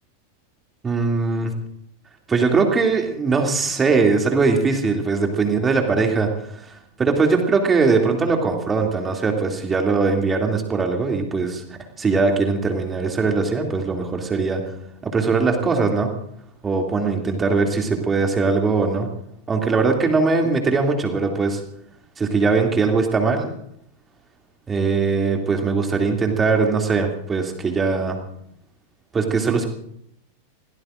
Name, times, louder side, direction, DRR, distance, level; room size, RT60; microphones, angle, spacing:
voice 1, 0.8-1.5 2.3-6.3 7.0-11.6 12.0-14.6 15.0-16.1 16.6-19.1 19.5-21.6 22.2-23.5 24.7-28.2 29.1-29.7, right 4 dB, 15° right, 3 dB, 2.7 m, -20 dB
27.5 x 17.5 x 2.6 m, 0.73 s
figure-of-eight pair, 90°, 0 cm